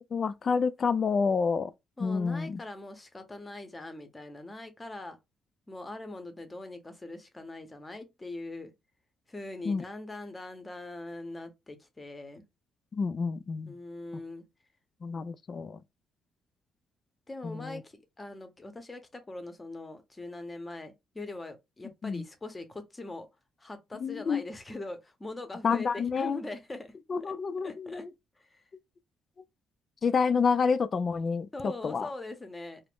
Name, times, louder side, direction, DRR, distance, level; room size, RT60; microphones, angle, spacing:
voice 1, 0.1-1.7 2.0-2.6 9.7-9.8 12.9-13.7 15.0-15.8 17.4-17.8 22.0-22.2 24.0-24.4 25.6-26.4 27.1-28.1 30.0-32.1, left 5 dB, 45° left, 0.3 m, -28 dB
voice 2, 2.0-5.2 5.7-8.7 9.3-12.4 13.7-14.5 17.3-23.3 23.6-26.9 27.2-27.3 27.6-28.1 28.4-28.6 31.5-32.8, left 2 dB, 20° left, 0.7 m, -42 dB
2.4 x 2.1 x 3.5 m
cardioid pair, 90°, 0 cm